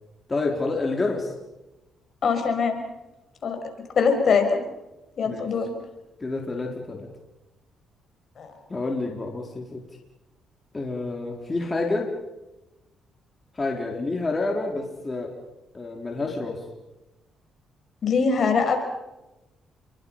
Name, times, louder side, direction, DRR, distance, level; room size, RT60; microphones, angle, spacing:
voice 1, 0.3-1.3 5.2-5.5 6.2-7.1 8.7-9.8 10.7-12.1 13.5-15.3 15.7-16.7, left 3 dB, 25° left, 0 dB, 4.2 m, -28 dB
voice 2, 2.2-2.8 3.4-3.6 4.0-4.6 5.2-5.7 8.4-8.5 18.0-18.8, left 5 dB, 55° left, 5 dB, 5.7 m, -22 dB
30.0 x 23.0 x 5.7 m, 0.98 s
cardioid pair, 90°, 0 cm